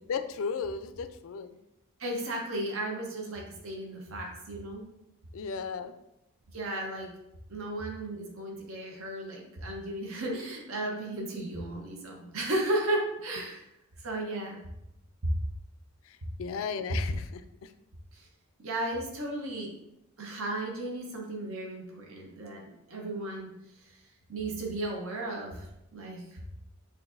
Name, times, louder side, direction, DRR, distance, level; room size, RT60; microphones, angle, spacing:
voice 1, 0.1-1.6 5.3-5.9 16.0-17.7, left 5 dB, 70° left, 11 dB, 0.3 m, -35 dB
voice 2, 2.0-4.8 6.5-7.1 7.5-13.7 14.0-14.6 15.2-15.3 18.1-18.3 18.6-19.7 20.2-23.5 24.3-25.7 25.9-26.4, right 1 dB, 70° right, 0 dB, 0.8 m, -34 dB
5.9 x 2.6 x 2.5 m, 0.85 s
head